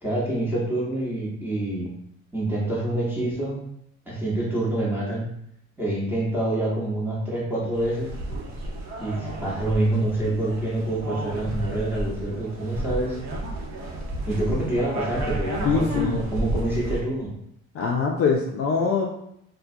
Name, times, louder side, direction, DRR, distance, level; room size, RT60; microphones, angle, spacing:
voice 1, 0.0-1.9 2.3-3.6 4.1-5.3 5.8-8.1 9.0-13.2 14.2-17.3, right 1 dB, 5° right, -6 dB, 1.0 m, -26 dB
sound 1, 7.7-17.0, right 1 dB, 60° right, 0.7 m, -32 dB
voice 2, 15.6-16.2 17.7-19.1, left 5 dB, 45° left, 0 dB, 0.4 m, -23 dB
2.2 x 2.1 x 2.7 m, 0.74 s
supercardioid pair, 75°, 31 cm